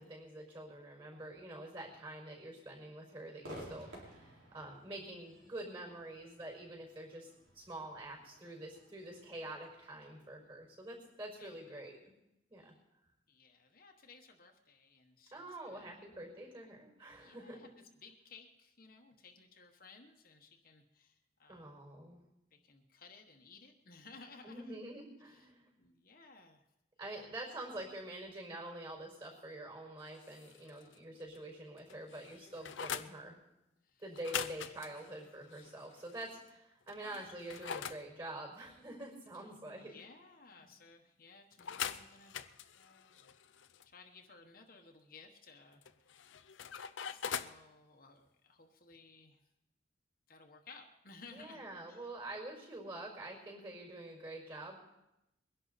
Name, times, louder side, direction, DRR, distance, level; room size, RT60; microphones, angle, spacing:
voice 1, 0.0-12.0 12.5-12.7 15.3-17.7 21.5-22.2 24.4-25.7 27.0-33.4 34.0-40.0 40.6-40.7 51.3-54.8, right 1 dB, 30° right, 0 dB, 5.0 m, -46 dB
Crowd / Fireworks, 3.4-10.7, equal, 90° right, 4.5 m, -55 dB
voice 2, 11.4-11.8 12.6-12.8 13.3-16.0 17.1-17.7 18.0-21.8 22.5-24.8 25.2-25.5 25.8-26.6 27.0-27.2 33.8-34.1 36.9-37.3 39.4-43.2 43.8-46.1 47.0-49.4 50.3-51.6 51.9-52.1, left 4 dB, 50° left, 3 dB, 1.2 m, -58 dB
sound 1, 30.1-31.0 31.3-31.4 31.8-33.1 34.1-36.3 36.9-38.0 41.6-43.8 45.8-47.6, left 8 dB, 90° left, 0.6 m, -43 dB
22.0 x 11.0 x 4.1 m, 0.88 s
head